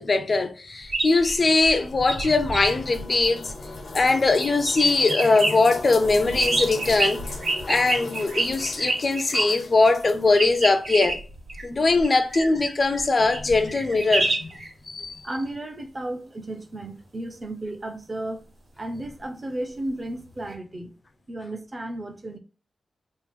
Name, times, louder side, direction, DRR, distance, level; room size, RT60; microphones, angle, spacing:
voice 1, 0.0-3.5 3.9-7.2 7.7-11.2 11.6-14.5 14.9-15.1, left 3 dB, 40° left, 0.5 m, -21 dB
sound 1, 0.8-4.0 4.3-5.5 6.0-9.5 10.4-14.7 20.5-20.6, right 2 dB, 65° right, 1.6 m, -28 dB
sound 2, 1.1-10.7, left 3 dB, 75° left, 0.8 m, -39 dB
voice 2, 15.2-18.4 18.8-20.9 21.3-22.4, right 1 dB, 30° right, 0.6 m, -33 dB
3.6 x 2.5 x 4.4 m
wide cardioid pair, 140°, 0 cm